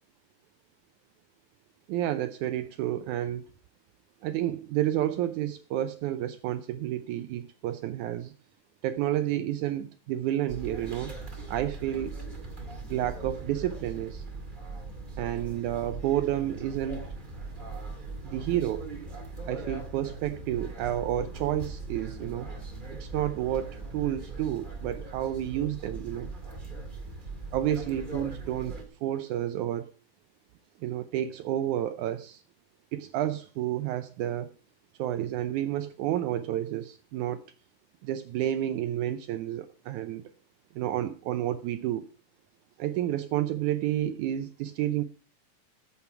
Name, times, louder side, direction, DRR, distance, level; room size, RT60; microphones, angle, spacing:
voice 1, 1.9-3.5 4.2-8.3 8.8-11.2 11.5-12.2 12.9-14.2 15.2-17.1 18.2-18.9 19.4-22.5 23.0-26.3 27.5-28.8 29.0-29.9 30.8-32.4 32.9-34.5 35.0-37.4 38.0-40.2 40.8-42.0 42.8-45.0, right 12 dB, 80° right, 1.8 m, -30 dB
sound 1, 10.5-28.8, right 3 dB, 20° right, 1.6 m, -40 dB
14.0 x 7.1 x 4.7 m
omnidirectional pair, 3.9 m